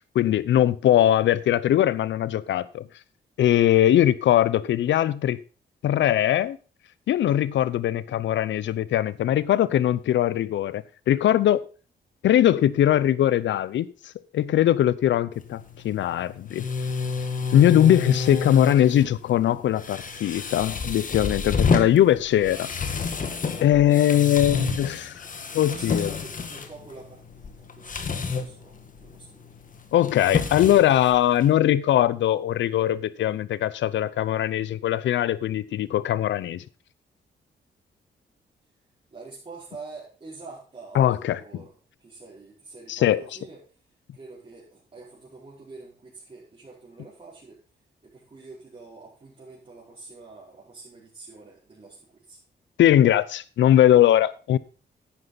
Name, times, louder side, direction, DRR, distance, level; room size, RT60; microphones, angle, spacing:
voice 1, 0.1-2.9 3.4-5.4 5.8-6.6 7.1-11.6 12.2-13.9 14.3-16.7 17.5-22.7 23.6-25.1 25.5-26.2 29.9-36.6 40.9-41.4 42.9-43.2 52.8-54.6, left 11 dB, 85° left, 0.7 m, -21 dB
sound 1, 15.3-31.5, left 4 dB, 45° left, 1.6 m, -30 dB
voice 2, 25.7-29.5 39.1-43.6 44.1-47.6 48.0-52.4, right 3 dB, 35° right, 4.7 m, -46 dB
10.5 x 9.7 x 4.0 m
cardioid pair, 85°, 19 cm